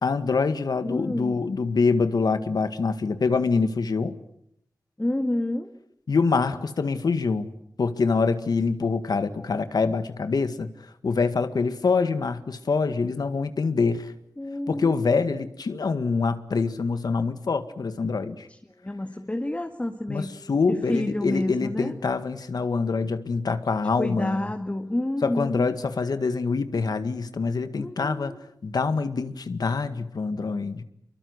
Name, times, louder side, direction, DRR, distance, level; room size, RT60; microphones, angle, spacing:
voice 1, 0.0-4.1 6.1-7.5 7.8-10.7 11.0-14.1 14.7-18.5 20.1-24.5 25.2-28.3 28.6-30.8, left 4 dB, 90° left, 1.9 m, -25 dB
voice 2, 0.8-1.4 5.0-5.7 14.4-14.9 18.8-20.4 20.7-21.9 24.0-25.7 27.7-28.4, left 1 dB, 20° left, 2.0 m, -29 dB
28.0 x 23.0 x 8.1 m
wide cardioid pair, 100°, 7 cm